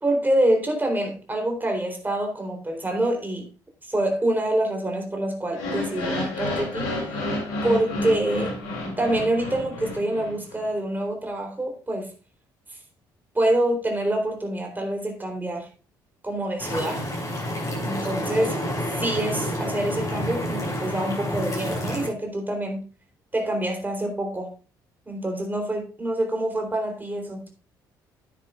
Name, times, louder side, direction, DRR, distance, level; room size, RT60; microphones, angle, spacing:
voice 1, 0.0-3.5 3.8-6.9 7.6-8.5 9.0-12.1 13.3-15.7 16.2-17.1 17.8-18.6 18.9-22.9 23.3-24.5 25.1-27.5, right 1 dB, 15° right, 3 dB, 3.7 m, -26 dB
sound 1, 5.5-10.6, left 1 dB, 75° left, 3.1 m, -30 dB
sound 2, 16.6-22.1, equal, 30° left, 5.5 m, -29 dB
9.6 x 9.3 x 2.5 m, 0.35 s
figure-of-eight pair, 50°, 11 cm